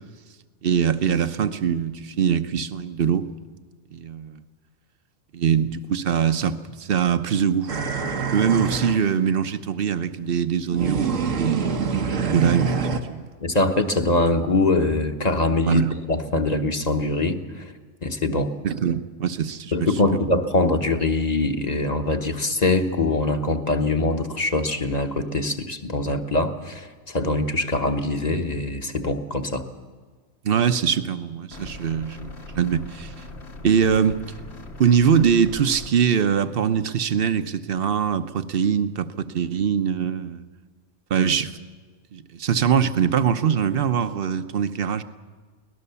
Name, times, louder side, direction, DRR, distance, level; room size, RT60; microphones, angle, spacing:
voice 1, 0.6-3.3 3.9-4.4 5.3-7.7 8.3-11.8 12.2-13.3 15.7-15.9 18.6-20.2 30.4-33.1 33.6-34.2 34.8-40.4 41.1-41.5 42.1-45.0, right 7 dB, 50° right, 11 dB, 1.0 m, -22 dB
sound 1, 7.7-9.1 10.7-13.0, right 5 dB, 80° right, 1.7 m, -25 dB
voice 2, 13.4-15.8 16.1-17.7 18.0-18.5 19.7-29.7, left 2 dB, 35° left, 6 dB, 1.2 m, -23 dB
sound 2, 31.5-35.9, left 2 dB, 60° left, 1.9 m, -40 dB
24.0 x 18.5 x 7.0 m, 1.5 s
omnidirectional pair, 1.3 m